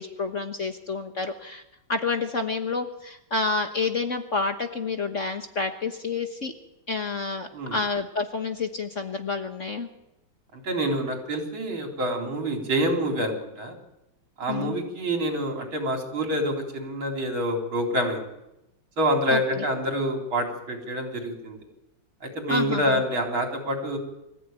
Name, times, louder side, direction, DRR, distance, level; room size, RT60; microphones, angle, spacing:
voice 1, 0.0-1.6 1.9-6.5 6.9-9.9 14.5-14.8 19.3-19.6 22.5-23.0, left 4 dB, 40° left, 6 dB, 1.4 m, -29 dB
voice 2, 10.5-13.7 14.4-18.3 19.0-21.6 22.2-24.0, equal, 70° right, 2 dB, 4.6 m, -27 dB
24.5 x 15.0 x 9.1 m, 0.89 s
omnidirectional pair, 2.3 m